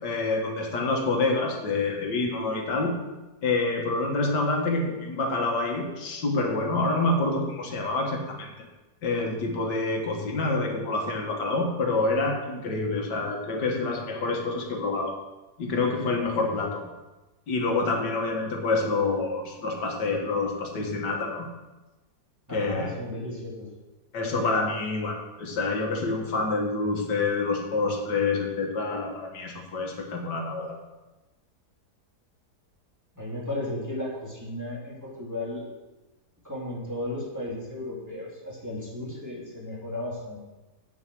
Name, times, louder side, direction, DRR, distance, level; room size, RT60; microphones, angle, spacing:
voice 1, 0.0-2.9 3.4-8.5 9.0-15.2 15.6-16.8 17.5-21.5 22.5-23.0 24.1-30.8, left 3 dB, 85° left, 2 dB, 2.1 m, -27 dB
voice 2, 22.5-23.7 33.1-35.7 36.4-40.4, left 1 dB, 10° right, -6 dB, 2.8 m, -34 dB
8.1 x 7.4 x 6.2 m, 1.1 s
omnidirectional pair, 1.8 m